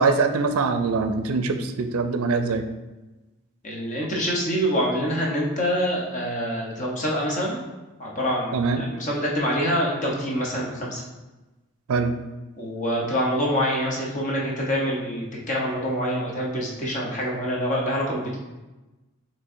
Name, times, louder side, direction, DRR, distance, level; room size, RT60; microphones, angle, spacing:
voice 1, 0.0-2.6 8.5-8.8 11.9-12.1, right 4 dB, 85° right, 8 dB, 0.4 m, -23 dB
voice 2, 3.6-7.6 8.0-11.0 12.6-18.4, equal, 35° left, -3 dB, 0.9 m, -26 dB
6.2 x 3.2 x 2.6 m, 1.1 s
head